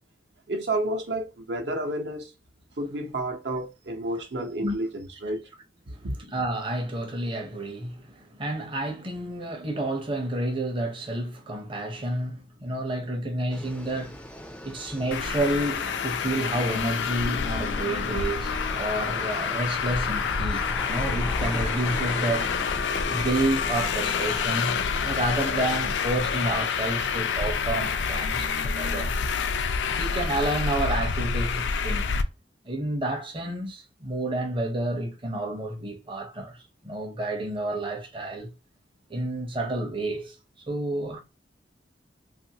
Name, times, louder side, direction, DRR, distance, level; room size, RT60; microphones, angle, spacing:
voice 1, 0.5-2.3 2.8-5.5 6.0-6.1, right 1 dB, 70° right, 0.8 m, -30 dB
voice 2, 5.9-14.2 14.6-22.5 23.0-29.2 29.9-32.1 32.6-38.5 39.1-40.3 40.7-41.2, right 1 dB, 30° right, 0.7 m, -30 dB
sound 1, 13.5-25.0, equal, 5° left, 0.3 m, -40 dB
Traffic noise roadway noise, 15.1-32.2, left 5 dB, 80° left, 0.4 m, -28 dB
2.9 x 2.5 x 2.8 m
head